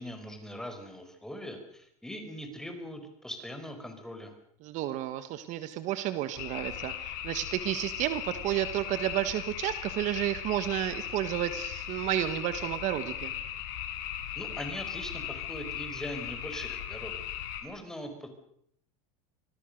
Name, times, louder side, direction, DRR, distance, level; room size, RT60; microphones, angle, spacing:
voice 1, 0.0-4.3 14.4-17.2 17.6-18.3, equal, 5° left, 6 dB, 4.6 m, -41 dB
voice 2, 4.6-13.3, right 13 dB, 45° right, 12 dB, 1.5 m, -31 dB
sound 1, 6.3-17.6, left 11 dB, 65° left, 5.4 m, -38 dB
26.0 x 19.5 x 6.6 m, 0.69 s
supercardioid pair, 145°, 17 cm